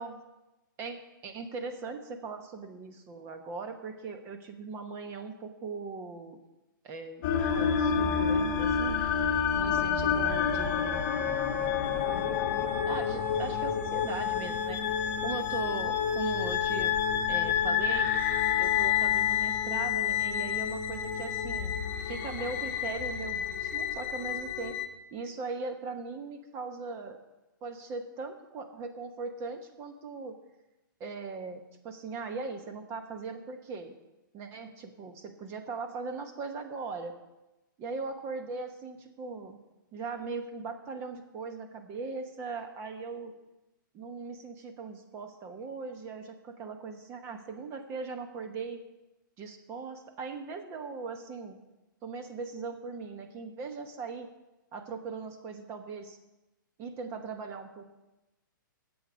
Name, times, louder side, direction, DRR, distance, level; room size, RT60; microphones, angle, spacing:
voice 1, 0.8-6.4 6.8-7.2 7.5-9.1 9.6-11.1 12.1-12.3 12.9-14.8 15.2-17.0 17.3-18.1 18.6-24.8 25.1-27.2 27.6-30.4 31.0-33.9 34.3-37.1 37.8-39.6 39.9-43.3 43.9-48.8 49.4-51.6 52.0-54.3 54.7-56.2 56.8-57.8, right 4 dB, 25° right, 7 dB, 1.1 m, -39 dB
sound 1, 7.2-24.9, left 7 dB, 35° left, 1.2 m, -29 dB
10.0 x 8.1 x 6.3 m, 1.0 s
hypercardioid pair, 155°, 11 cm